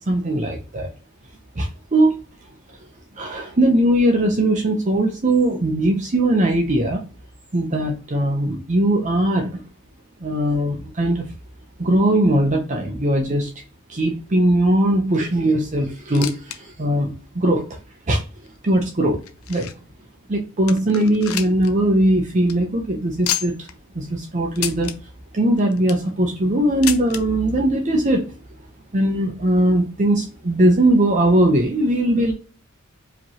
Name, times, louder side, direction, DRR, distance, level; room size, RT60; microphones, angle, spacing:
voice 1, 0.1-0.9 1.6-2.2 3.2-7.0 7.5-9.6 10.2-11.3 11.8-13.5 13.9-17.8 18.1-18.2 18.6-19.2 19.5-19.7 20.3-23.7 23.9-24.9 25.3-28.2 28.9-32.3, right 1 dB, 35° right, 2 dB, 0.7 m, -19 dB
sound 1, 16.0-16.6 16.9-17.0 17.6-17.7 18.5-19.9 20.3-20.4 20.7-21.7 22.0-22.1 22.4-22.5 23.2-23.7 24.5-25.0 25.6-26.1 26.8-27.2 28.2-28.3 28.5-28.6 29.4-29.5, left 10 dB, 90° left, 0.6 m, -29 dB
5.0 x 3.1 x 2.8 m, 0.37 s
head